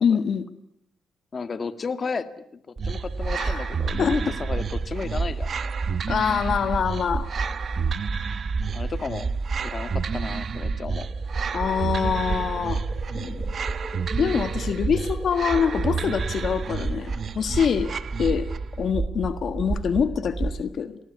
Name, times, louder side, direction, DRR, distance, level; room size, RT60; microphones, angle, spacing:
voice 1, 0.0-0.4 3.4-3.7 4.0-4.1 6.1-7.3 11.5-12.8 14.2-17.9 18.2-18.5 18.8-21.0, left 7 dB, 55° left, 10 dB, 1.6 m, -25 dB
voice 2, 1.3-5.5 7.8-8.0 8.7-9.3 9.6-11.1 13.1-13.6, left 4 dB, 35° left, 10 dB, 2.0 m, -33 dB
sound 1, 2.8-20.6, right 3 dB, 30° right, 1.9 m, -30 dB
sound 2, 2.8-18.7, right 7 dB, 50° right, 1.2 m, -33 dB
sound 3, 10.8-17.3, equal, 15° left, 6.8 m, -43 dB
28.0 x 20.0 x 9.7 m, 0.72 s
cardioid pair, 90°, 0 cm